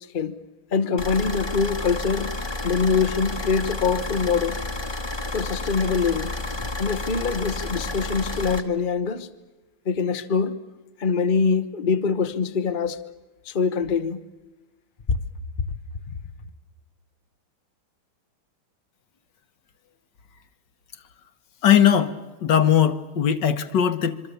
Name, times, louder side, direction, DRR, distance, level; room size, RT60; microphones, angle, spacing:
voice 1, 0.7-2.4 2.6-4.7 5.3-6.3 6.8-9.3 9.9-10.6 11.0-13.1 13.4-14.3 15.1-15.2, left 5 dB, 35° left, 0.8 m, -24 dB
sound 1, 1.0-8.6, left 2 dB, 15° left, 1.2 m, -31 dB
voice 2, 21.6-22.2 22.4-24.2, left 9 dB, 60° left, 1.6 m, -19 dB
26.5 x 23.5 x 6.9 m
omnidirectional pair, 2.3 m